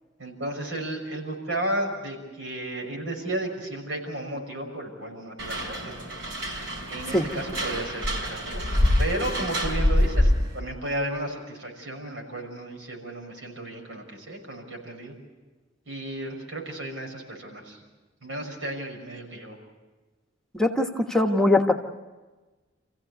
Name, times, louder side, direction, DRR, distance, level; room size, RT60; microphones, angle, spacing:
voice 1, 0.2-6.1 6.9-8.6 9.0-15.2 15.9-17.8 18.2-19.6, right 1 dB, 90° right, 1 dB, 6.2 m, -33 dB
sound 1, 5.4-10.6, left 1 dB, 70° right, 5.1 m, -25 dB
voice 2, 20.5-21.7, left 2 dB, 5° left, 3 dB, 1.3 m, -21 dB
28.0 x 16.0 x 8.1 m, 1.2 s
head